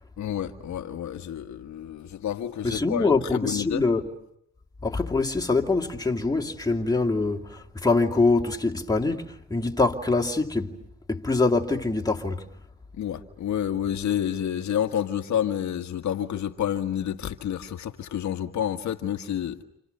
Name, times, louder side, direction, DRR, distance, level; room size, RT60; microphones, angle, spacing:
voice 1, 0.2-3.8 13.0-19.6, left 10 dB, 70° left, 1.7 m, -29 dB
voice 2, 2.6-4.1 4.8-10.8 11.1-12.4, left 3 dB, 10° left, 2.6 m, -24 dB
29.0 x 28.5 x 6.9 m
cardioid pair, 90°, 30 cm